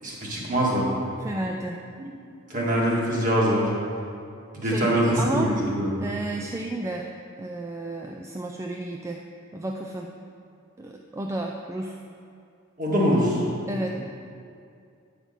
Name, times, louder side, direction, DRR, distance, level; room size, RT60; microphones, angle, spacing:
voice 1, 0.0-0.9 2.5-3.7 4.5-6.0 12.8-13.4, equal, 40° right, -4 dB, 1.9 m, -23 dB
voice 2, 1.2-1.8 4.6-5.5 6.0-7.1 7.4-9.2 9.5-10.1 10.8-12.0 13.7-14.0, right 1 dB, 15° right, 1 dB, 0.3 m, -32 dB
8.8 x 5.0 x 6.6 m, 2.4 s
head